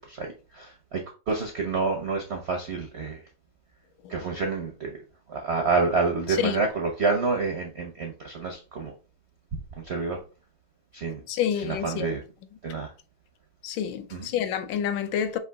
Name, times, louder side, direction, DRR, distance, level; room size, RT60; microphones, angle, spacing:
voice 1, 0.1-1.0 1.3-3.2 4.1-5.0 5.3-8.9 9.8-10.2 10.9-11.2 11.6-12.2 12.6-12.9 14.1-14.3, right 4 dB, 70° right, 0.6 m, -28 dB
voice 2, 11.3-12.1 13.6-15.4, left 9 dB, 80° left, 1.2 m, -28 dB
4.9 x 2.7 x 3.4 m
omnidirectional pair, 2.0 m